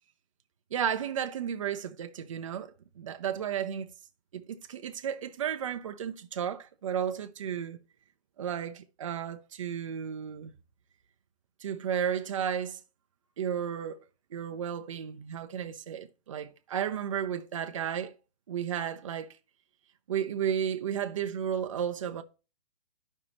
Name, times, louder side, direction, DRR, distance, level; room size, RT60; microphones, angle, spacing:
voice 1, 0.7-3.9 4.3-7.8 8.4-10.5 11.6-12.8 13.4-14.0 14.3-18.2 18.5-19.4 20.1-22.2, right 8 dB, 30° right, 0.5 m, -33 dB
12.5 x 5.4 x 2.9 m
hypercardioid pair, 155°, 34 cm